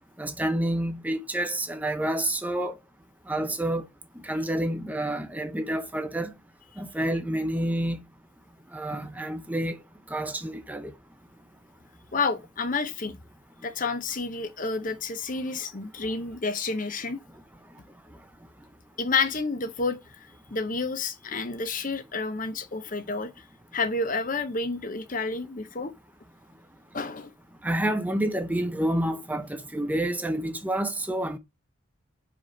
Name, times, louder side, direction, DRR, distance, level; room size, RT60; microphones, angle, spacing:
voice 1, 0.2-2.8 3.3-3.9 4.2-6.3 6.8-8.0 8.7-9.8 10.1-10.9 27.6-31.4, right 1 dB, 10° right, 0.7 m, -28 dB
voice 2, 12.1-13.2 13.6-17.2 19.0-23.3 23.7-25.9 26.9-27.3, left 4 dB, 40° left, 0.8 m, -30 dB
5.0 x 4.8 x 6.0 m
head